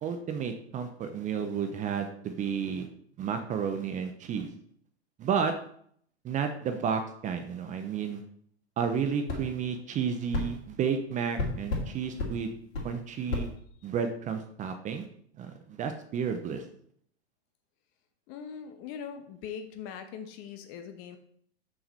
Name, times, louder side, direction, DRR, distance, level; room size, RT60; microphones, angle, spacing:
voice 1, 0.0-2.9 3.2-4.5 5.2-5.5 6.2-8.2 8.8-12.5 12.8-13.5 13.8-15.1 15.4-16.6, right 7 dB, 20° right, 7 dB, 0.7 m, -31 dB
sound 1, 9.3-9.4 10.3-10.5 11.4-11.9 12.2-12.3 12.7-12.9 13.3-13.5, left 3 dB, 65° left, 2.6 m, -30 dB
voice 2, 18.3-21.2, left 7 dB, 40° left, 7 dB, 1.2 m, -41 dB
7.1 x 6.2 x 4.2 m, 0.63 s
hypercardioid pair, 105°, 33 cm